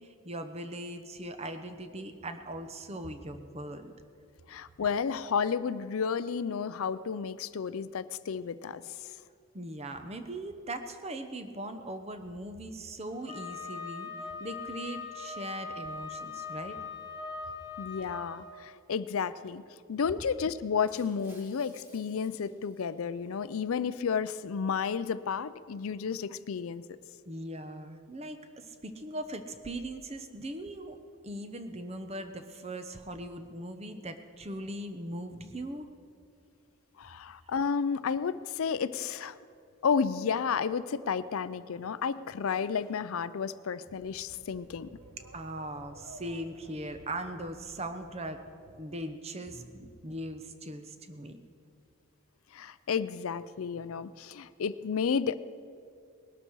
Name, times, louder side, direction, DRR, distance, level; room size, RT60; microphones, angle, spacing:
voice 1, 0.0-3.9 9.5-14.1 14.4-16.8 27.3-31.0 31.2-35.9 45.3-48.4 48.8-51.4, right 1 dB, 30° right, 8 dB, 0.8 m, -40 dB
voice 2, 4.5-8.8 17.8-19.6 19.9-26.8 37.0-39.4 39.8-44.9 52.5-55.4, left 6 dB, 75° left, 15 dB, 0.4 m, -32 dB
Wind instrument woodwind instrument, 13.3-18.4, left 5 dB, 20° left, 1.1 m, -41 dB
Shatter, 20.9-23.3, equal, 10° right, 2.0 m, -59 dB
sound 1, 43.9-48.9, right 2 dB, 80° right, 1.0 m, -54 dB
19.5 x 12.0 x 4.7 m, 2.3 s
head